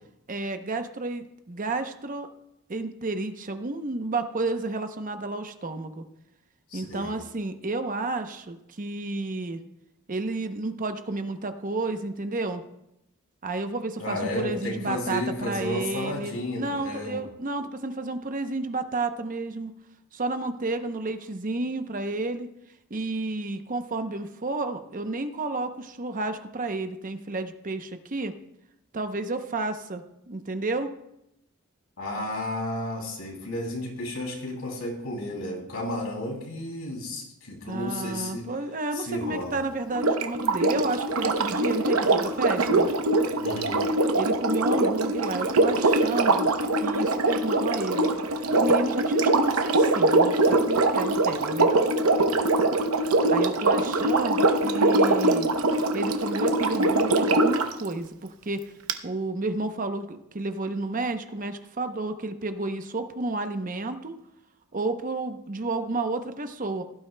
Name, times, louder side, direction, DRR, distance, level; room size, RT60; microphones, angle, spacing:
voice 1, 0.3-2.3 2.7-6.0 6.7-9.6 10.1-12.6 13.4-19.7 20.1-22.5 22.9-28.3 28.9-30.9 37.7-42.9 44.1-46.5 46.8-48.1 48.5-51.7 53.3-55.5 55.9-58.6 59.0-64.1 64.7-66.8, right 2 dB, 40° right, 8 dB, 0.7 m, -31 dB
voice 2, 6.7-7.1 14.0-17.2 32.0-38.5 38.9-39.6 43.4-43.9, left 1 dB, 80° left, 0 dB, 2.9 m, -32 dB
Sink (filling or washing), 39.9-57.7 58.9-59.0, right 2 dB, 85° right, 0.8 m, -23 dB
16.5 x 12.0 x 2.2 m, 0.83 s
head